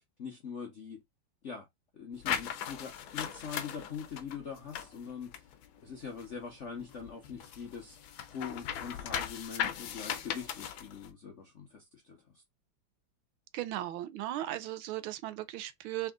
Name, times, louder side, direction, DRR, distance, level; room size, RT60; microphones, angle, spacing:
voice 1, 0.2-1.0 1.4-1.7 1.9-5.5 5.8-12.4, left 6 dB, 55° left, 0.8 m, -43 dB
sound 1, 2.2-6.5 6.8-11.1, left 9 dB, 75° left, 1.5 m, -38 dB
voice 2, 13.5-16.1, right 13 dB, 80° right, 1.5 m, -37 dB
4.0 x 3.5 x 3.6 m
omnidirectional pair, 2.2 m